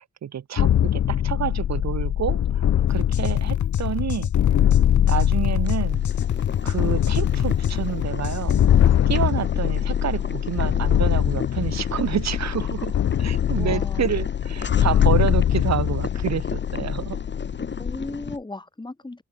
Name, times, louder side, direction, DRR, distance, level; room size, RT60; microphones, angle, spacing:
voice 1, 0.0-4.3 5.1-6.0 6.6-8.6 9.1-17.2, right 9 dB, 65° right, 1.1 m, -29 dB
sound 1, 0.6-18.2, left 10 dB, 60° left, 0.6 m, -22 dB
sound 2, 2.9-9.0, left 9 dB, 80° left, 1.7 m, -29 dB
Boiling, 5.6-18.4, left 5 dB, 40° left, 1.6 m, -34 dB
voice 2, 13.6-14.2 17.8-19.2, left 2 dB, 15° left, 1.5 m, -36 dB
wide cardioid pair, 105°, 29 cm